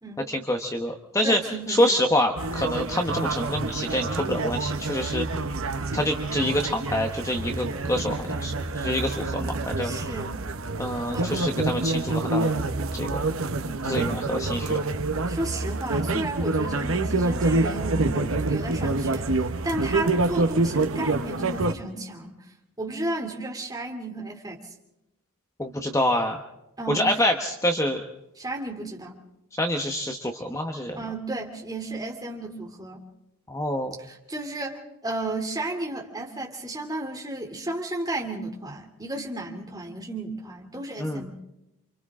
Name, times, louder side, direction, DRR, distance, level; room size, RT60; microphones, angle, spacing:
voice 1, 0.3-1.4 1.7-5.3 5.9-9.9 10.8-12.5 12.9-13.2 13.8-14.8 25.6-26.4 26.9-28.0 29.6-31.0 33.5-34.0 41.0-41.2, left 1 dB, 15° left, 4 dB, 1.1 m, -26 dB
voice 2, 1.2-2.0 9.8-10.4 11.1-11.3 13.6-14.2 15.3-22.4 22.8-24.6 26.8-27.1 28.4-29.2 31.0-33.1 34.0-41.3, right 2 dB, 15° right, 1 dB, 2.8 m, -33 dB
sound 1, 2.4-21.7, right 2 dB, 60° right, 1.0 m, -27 dB
29.0 x 26.0 x 3.7 m, 0.90 s
head